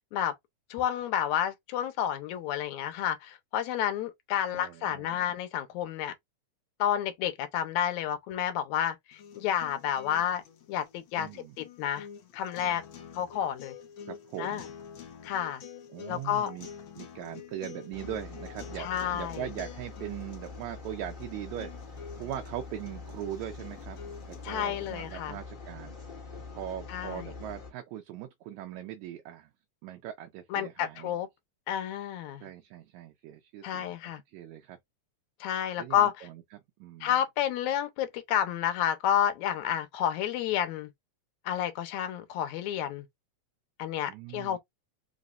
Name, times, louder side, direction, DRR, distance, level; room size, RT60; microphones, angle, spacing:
voice 1, 0.7-6.1 6.8-10.4 10.7-12.1 12.3-12.8 13.1-13.8 14.4-14.6 15.2-15.6 16.1-16.5 18.8-19.4 24.4-25.4 26.9-27.3 30.5-31.3 31.7-32.5 33.6-34.2 35.4-36.3 37.0-40.9 41.5-43.1 43.8-44.6, left 10 dB, 80° left, 2.1 m, -30 dB
voice 2, 4.5-5.2 11.2-11.6 14.1-14.7 15.9-16.7 17.0-24.0 24.3-25.9 26.5-29.5 29.8-31.2 32.4-34.8 35.8-37.1 44.1-44.6, right 11 dB, 80° right, 1.9 m, -40 dB
sound 1, 9.1-25.1, left 7 dB, 65° left, 1.4 m, -48 dB
sound 2, 17.9-27.7, left 4 dB, 25° left, 1.2 m, -44 dB
5.1 x 3.1 x 2.4 m
omnidirectional pair, 3.3 m